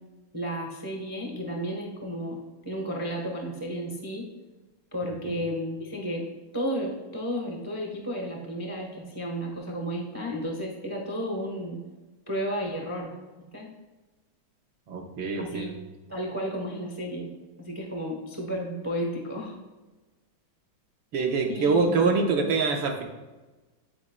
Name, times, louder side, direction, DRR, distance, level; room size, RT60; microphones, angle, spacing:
voice 1, 0.3-4.3 4.9-6.2 6.5-11.8 12.3-13.1 13.5-13.7 15.4-15.7 16.1-17.3 17.6-19.6 21.5-22.2, equal, 15° right, 0 dB, 0.6 m, -33 dB
voice 2, 5.0-5.4 14.9-15.7 21.1-23.0, right 4 dB, 75° right, 2 dB, 1.6 m, -25 dB
9.5 x 5.0 x 2.2 m, 1.2 s
omnidirectional pair, 2.2 m